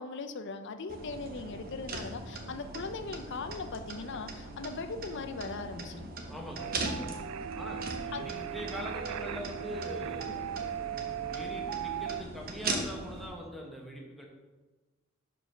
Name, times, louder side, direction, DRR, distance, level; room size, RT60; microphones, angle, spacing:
voice 1, 0.0-6.1 8.1-8.3, left 4 dB, 55° left, 8 dB, 0.5 m, -39 dB
sound 1, 0.9-13.3, right 2 dB, 45° right, 0.9 m, -40 dB
voice 2, 6.3-6.8 7.6-10.8 11.3-14.3, equal, ahead, -1 dB, 1.1 m, -42 dB
sound 2, 6.6-12.2, right 9 dB, 85° right, 0.3 m, -38 dB
5.0 x 4.7 x 5.9 m, 1.2 s
head